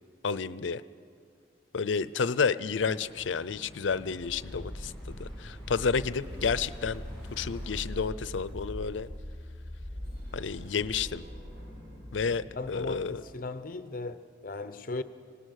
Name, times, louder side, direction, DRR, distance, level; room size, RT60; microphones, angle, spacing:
voice 1, 0.2-0.8 1.7-7.0 7.3-9.1 10.3-11.2 12.1-13.2, left 5 dB, 85° left, 0.6 m, -30 dB
sound 1, 2.8-7.8, equal, 5° left, 7.3 m, -49 dB
sound 2, 4.2-13.4, equal, 65° right, 6.7 m, -42 dB
voice 2, 12.6-15.0, left 3 dB, 45° left, 0.8 m, -37 dB
25.0 x 18.5 x 6.4 m
head